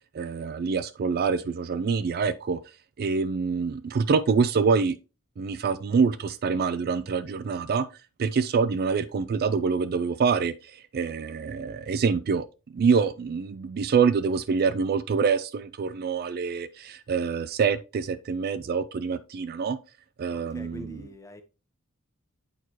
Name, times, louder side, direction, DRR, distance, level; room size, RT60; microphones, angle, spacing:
voice 1, 0.1-2.6 3.0-4.9 5.4-7.8 8.2-12.4 12.7-19.8 20.2-20.9, right 5 dB, 45° right, 0.3 m, -25 dB
voice 2, 20.3-21.4, left 1 dB, 15° left, 0.8 m, -44 dB
8.1 x 4.5 x 2.9 m
head